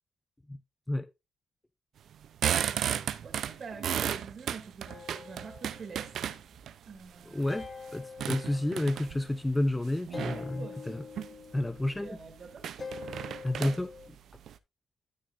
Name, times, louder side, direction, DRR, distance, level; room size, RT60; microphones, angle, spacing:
sound 1, 2.1-6.7 7.2-9.3 10.1-10.5 11.0-11.3 11.7-11.8 12.1-12.2 12.6-14.6, right 9 dB, 65° right, 0.5 m, -34 dB
voice 1, 3.2-6.1 6.9-7.5 10.3-11.1 12.0-12.7, right 5 dB, 45° right, 2.5 m, -46 dB
sound 2, 4.9-6.7 6.9-9.6 10.1-14.1, left 5 dB, 30° left, 1.0 m, -46 dB
voice 2, 7.3-11.0 11.5-12.2 13.4-13.9, left 1 dB, 10° left, 0.5 m, -30 dB
12.5 x 6.2 x 2.5 m
cardioid pair, 90°, 0 cm